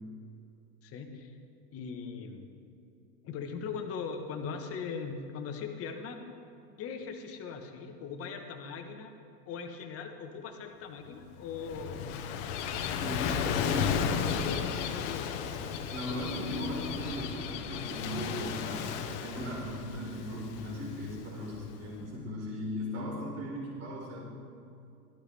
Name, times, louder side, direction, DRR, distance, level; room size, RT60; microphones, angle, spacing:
voice 1, 0.8-1.4 1.7-2.5 3.2-6.2 6.8-9.1 9.4-12.0 13.6-15.4, left 5 dB, 30° left, 5 dB, 1.3 m, -40 dB
Gull seagull / Waves surf, 11.3-21.9, left 7 dB, 50° left, 1.1 m, -34 dB
voice 2, 12.9-14.0 15.9-24.2, left 1 dB, 30° right, -5 dB, 3.9 m, -38 dB
17.0 x 13.5 x 3.4 m, 2.6 s
supercardioid pair, 140°, 48 cm